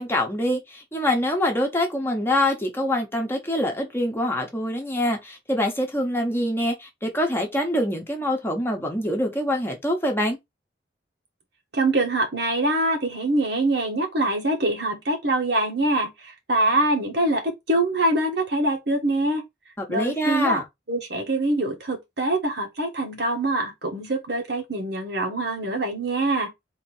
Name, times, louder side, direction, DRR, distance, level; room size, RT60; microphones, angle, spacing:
voice 1, 0.0-10.4 19.8-20.6, left 1 dB, 15° left, 1.0 m, -25 dB
voice 2, 11.7-19.4 19.9-20.6 20.9-26.5, right 2 dB, 70° right, 1.4 m, -24 dB
3.7 x 2.9 x 4.4 m
head